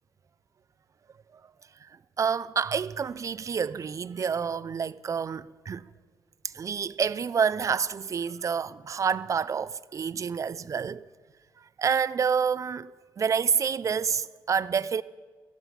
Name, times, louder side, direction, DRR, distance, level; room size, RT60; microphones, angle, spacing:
voice 1, 1.8-5.9 6.4-11.0 11.6-12.9 13.2-15.0, right 6 dB, 40° right, 0.4 m, -28 dB
13.5 x 11.0 x 5.7 m
cardioid pair, 95°, 9 cm